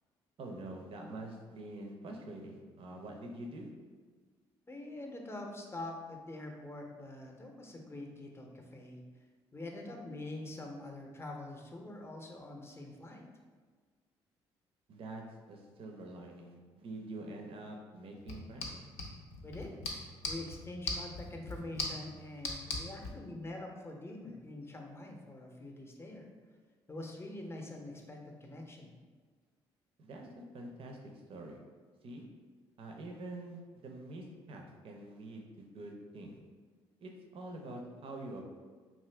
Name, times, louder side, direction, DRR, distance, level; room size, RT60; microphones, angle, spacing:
voice 1, 0.4-3.7 14.9-18.7 30.0-30.3 30.5-31.0 31.3-31.6 32.0-32.2 32.8-36.3 37.0-38.4, right 2 dB, 55° right, 1 dB, 0.5 m, -46 dB
voice 2, 4.7-9.0 9.5-13.2 19.4-19.7 20.3-26.3 26.9-28.9, left 2 dB, 20° left, 2 dB, 0.6 m, -45 dB
sound 1, 18.2-23.2, left 3 dB, 70° left, 0.5 m, -41 dB
2.6 x 2.4 x 3.2 m, 1.5 s
hypercardioid pair, 55°, 12 cm